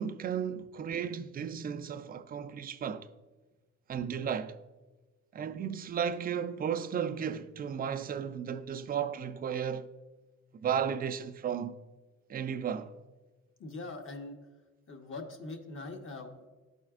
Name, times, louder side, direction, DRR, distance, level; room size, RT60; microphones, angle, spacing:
voice 1, 0.0-3.1 3.9-4.6 5.3-9.9 10.6-11.8 12.3-12.9, right 8 dB, 30° right, 0.4 m, -34 dB
voice 2, 13.6-14.4 14.9-16.5, left 3 dB, 40° left, 1.0 m, -42 dB
11.5 x 4.2 x 2.4 m
cardioid pair, 90°, 30 cm